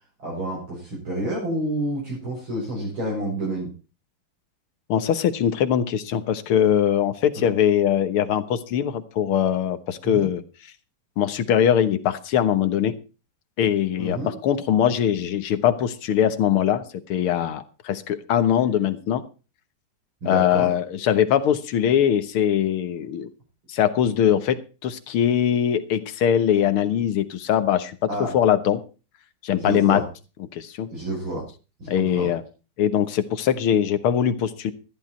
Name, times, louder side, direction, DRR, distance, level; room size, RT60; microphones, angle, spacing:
voice 1, 0.2-3.7 7.4-7.5 10.0-10.3 14.0-14.3 20.2-20.7 28.1-28.3 29.6-30.1 30.9-31.5 31.8-32.3, right 1 dB, 70° right, -5 dB, 7.0 m, -29 dB
voice 2, 4.9-10.4 11.2-13.0 13.6-16.8 17.1-19.2 20.3-23.3 23.7-28.0 28.3-28.8 29.4-30.0 30.5-30.9 31.9-32.4 32.8-34.7, left 9 dB, 80° left, 12 dB, 2.1 m, -21 dB
14.0 x 11.5 x 4.4 m, 0.33 s
omnidirectional pair, 2.3 m